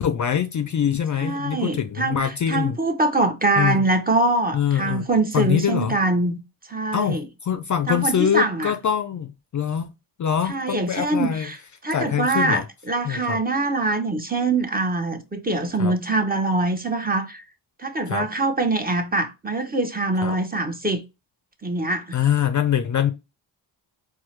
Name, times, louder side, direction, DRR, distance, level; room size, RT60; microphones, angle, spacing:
voice 1, 0.0-2.8 3.6-3.8 4.5-5.1 5.3-6.0 6.9-9.9 10.2-11.5 11.9-12.7 13.0-13.4 15.8-15.9 18.1-18.3 20.2-20.4 22.1-23.1, left 9 dB, 40° left, 0.4 m, -24 dB
voice 2, 1.2-6.4 6.7-7.3 7.9-8.7 10.5-11.6 11.8-12.6 12.9-17.4 17.8-21.0 21.6-22.2, right 2 dB, 20° right, 0.7 m, -23 dB
4.4 x 2.1 x 3.1 m
cardioid pair, 55°, 47 cm